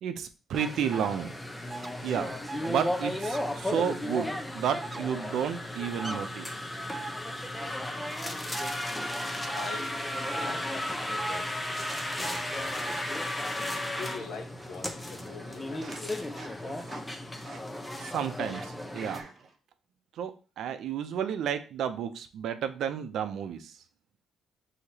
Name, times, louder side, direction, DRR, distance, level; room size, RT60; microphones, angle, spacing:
voice 1, 0.0-1.3 2.0-2.3 2.6-6.5 18.0-19.2 20.2-23.7, right 8 dB, 75° right, 9 dB, 0.5 m, -32 dB
sound 1, 0.5-19.2, left 1 dB, 10° left, 0.7 m, -34 dB
sound 2, 0.9-1.1 1.7-1.9 2.5-2.7 3.2-3.4 4.8-5.0 6.0-6.2 6.9-7.1 8.5-8.7 9.5-9.7 10.3-10.5 11.2-11.4 12.2-12.4 12.9-13.0, right 4 dB, 25° right, 0.3 m, -39 dB
sound 3, 9.2-11.2 11.8-14.2 14.5-15.0 15.3-19.6, right 4 dB, 50° right, 1.0 m, -50 dB
voice 2, 9.5-10.0 10.3-11.5 12.2-12.8 13.8-17.0, left 4 dB, 70° left, 2 dB, 1.3 m, -44 dB
6.3 x 2.8 x 2.8 m, 0.35 s
cardioid pair, 90°, 0 cm